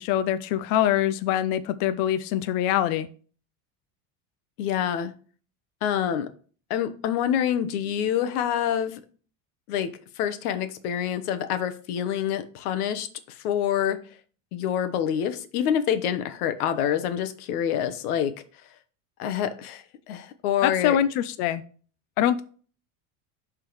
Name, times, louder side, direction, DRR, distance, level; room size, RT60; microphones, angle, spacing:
voice 1, 0.0-3.1 20.6-21.6 22.2-22.4, left 11 dB, 50° left, 12 dB, 0.5 m, -24 dB
voice 2, 4.6-5.1 5.8-6.3 6.7-9.0 9.7-9.9 10.2-14.0 14.5-18.4 19.2-21.0, left 9 dB, 90° left, 10 dB, 1.1 m, -26 dB
11.5 x 3.8 x 3.1 m, 0.40 s
cardioid pair, 150°, 43 cm